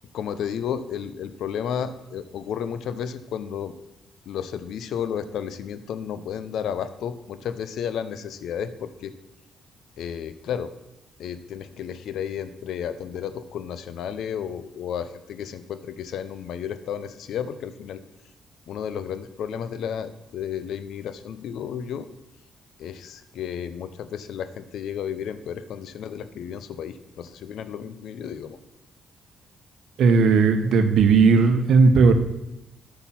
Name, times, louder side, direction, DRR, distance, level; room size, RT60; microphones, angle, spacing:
voice 1, 0.1-3.7 4.3-9.1 10.0-10.7 11.2-18.0 18.7-22.1 22.8-28.6, left 8 dB, 75° left, 12 dB, 0.6 m, -32 dB
voice 2, 30.0-32.1, right 4 dB, 70° right, 8 dB, 0.9 m, -16 dB
8.4 x 5.9 x 5.8 m, 0.95 s
cardioid pair, 90°, 0 cm